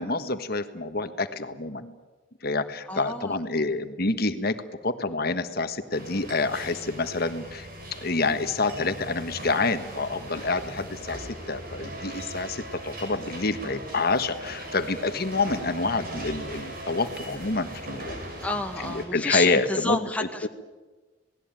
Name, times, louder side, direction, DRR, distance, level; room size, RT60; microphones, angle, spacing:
voice 1, 0.0-2.0 2.4-4.6 4.8-7.7 8.0-18.2 18.8-20.0 20.4-20.5, left 3 dB, 55° left, 9 dB, 1.5 m, -27 dB
voice 2, 2.9-3.4 18.4-20.5, left 2 dB, 5° left, 4 dB, 1.6 m, -30 dB
sound 1, 5.9-19.1, right 1 dB, 50° right, 6.4 m, -39 dB
27.5 x 19.0 x 9.1 m, 1.3 s
head